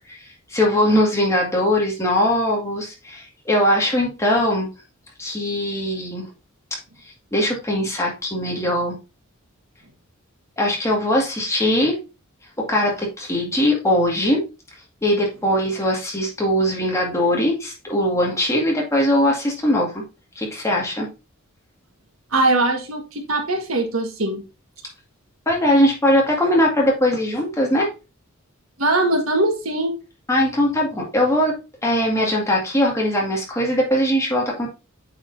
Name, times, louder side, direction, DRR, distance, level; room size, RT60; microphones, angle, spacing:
voice 1, 0.1-4.7 5.2-6.3 7.3-9.0 10.6-12.0 12.6-14.4 15.0-20.0 20.4-21.1 25.5-27.9 30.3-31.5 31.8-34.7, left 1 dB, 15° left, -2 dB, 1.9 m, -20 dB
voice 2, 22.3-24.4 28.8-29.9, right 2 dB, 75° right, 4 dB, 1.4 m, -21 dB
8.6 x 5.0 x 2.6 m, 0.29 s
head